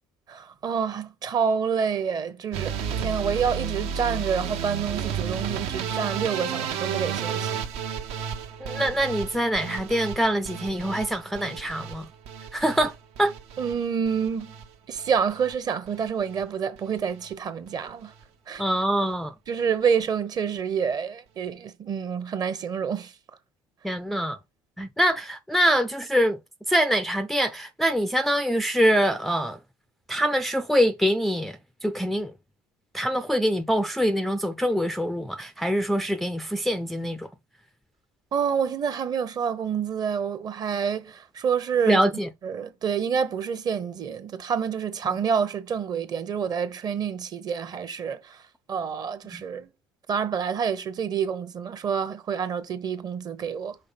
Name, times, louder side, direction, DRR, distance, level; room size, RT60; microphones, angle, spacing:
voice 1, 0.3-7.6 13.6-14.5 14.9-18.1 18.5-18.6 19.5-23.1 38.3-42.0 42.4-48.4 48.7-49.7 50.1-53.8, right 7 dB, 35° right, 1.0 m, -28 dB
sound 1, 2.5-14.7 15.0-15.5 15.9-16.4 16.8-17.0 17.3-17.4 17.7-17.8, right 7 dB, 65° right, 1.1 m, -32 dB
voice 2, 8.6-12.1 12.5-13.3 18.6-19.3 23.8-24.4 24.8-26.4 26.7-29.6 30.1-32.3 32.9-37.3 41.9-42.3 45.1-45.2 49.2-49.4, equal, ahead, 0.5 m, -24 dB
5.6 x 3.8 x 5.2 m
supercardioid pair, 105°, 11 cm